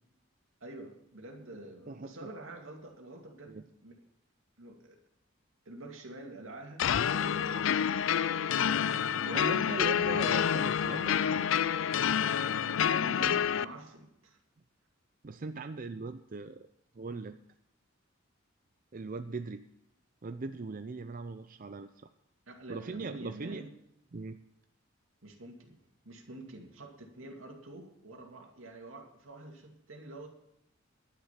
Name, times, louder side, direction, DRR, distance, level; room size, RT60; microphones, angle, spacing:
voice 1, 0.6-4.0 4.6-5.0 5.7-7.9 8.5-10.0 12.3-14.4 22.5-23.7 25.2-30.3, right 2 dB, 85° right, 2 dB, 2.5 m, -47 dB
sound 1, 6.8-13.6, left 8 dB, 75° left, 0.4 m, -28 dB
voice 2, 9.3-11.5 15.2-16.7 17.0-17.4 18.9-19.7 20.2-21.9 22.7-23.7 24.1-24.4, right 3 dB, 45° right, 9 dB, 0.5 m, -40 dB
11.5 x 10.0 x 5.8 m, 0.82 s
head